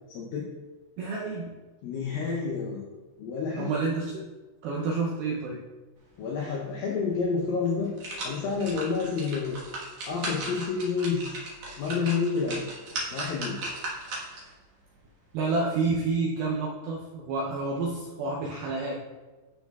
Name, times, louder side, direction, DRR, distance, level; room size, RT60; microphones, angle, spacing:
voice 1, 0.1-0.5 1.8-2.9 3.2-3.8 6.2-7.9 8.2-9.6 10.0-11.4 11.8-12.7 13.1-13.6, left 5 dB, 90° left, -2 dB, 2.0 m, -29 dB
voice 2, 1.0-1.5 3.6-4.2 4.6-5.6 15.3-19.0, right 3 dB, 85° right, -3 dB, 2.1 m, -29 dB
sound 1, 7.1-7.2 7.7-14.5 15.0-15.1, right 2 dB, 60° right, 1.9 m, -37 dB
12.0 x 4.6 x 2.3 m, 1.3 s
omnidirectional pair, 5.0 m